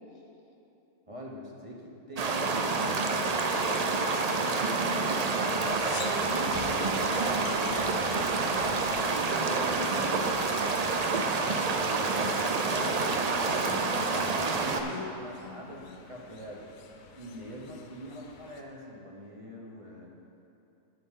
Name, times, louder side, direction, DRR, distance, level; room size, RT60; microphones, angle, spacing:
voice 1, 1.1-4.8 5.2-7.2 9.0-16.8 17.1-20.1, equal, 25° right, -2 dB, 1.0 m, -43 dB
sound 1, 2.2-14.8, right 3 dB, 80° right, 0.3 m, -28 dB
sound 2, 5.3-18.6, left 5 dB, 80° left, 1.1 m, -47 dB
voice 2, 7.0-8.4 13.6-14.0 14.8-15.1 15.4-15.9, left 3 dB, 30° left, -1 dB, 0.7 m, -44 dB
10.5 x 8.4 x 3.7 m, 2.8 s
omnidirectional pair, 1.4 m